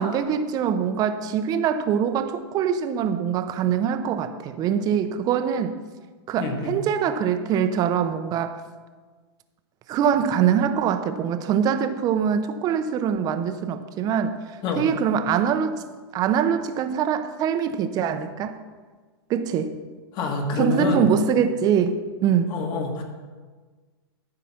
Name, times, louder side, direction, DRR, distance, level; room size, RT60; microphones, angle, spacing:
voice 1, 0.0-5.8 6.3-8.6 9.9-14.4 14.8-15.8 16.1-18.6 19.3-19.8 20.6-22.6, right 8 dB, 30° right, 9 dB, 0.7 m, -23 dB
voice 2, 6.4-6.7 14.6-14.8 20.1-21.1 22.5-23.0, left 4 dB, 35° left, 3 dB, 1.8 m, -26 dB
13.5 x 5.0 x 5.9 m, 1.4 s
hypercardioid pair, 135°, 14 cm